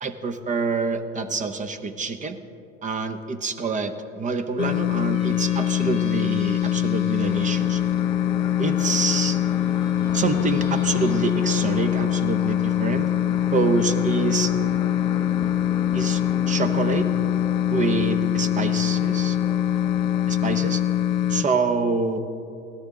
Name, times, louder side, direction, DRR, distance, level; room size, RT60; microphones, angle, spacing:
voice 1, 0.0-2.4 2.8-7.8 8.6-9.4 10.1-13.1 13.5-14.5 15.9-16.2 16.5-17.1 17.7-19.4 20.3-20.8 21.3-22.2, right 4 dB, 20° right, 11 dB, 0.7 m, -26 dB
sound 1, 4.6-21.4, left 11 dB, 70° left, 0.9 m, -23 dB
Squeak, 4.9-8.0 8.8-11.9, right 1 dB, 35° right, 3.3 m, -49 dB
sound 2, 7.2-20.5, left 4 dB, 10° left, 0.4 m, -38 dB
17.0 x 13.0 x 3.6 m, 2.8 s
hypercardioid pair, 100°, 40 cm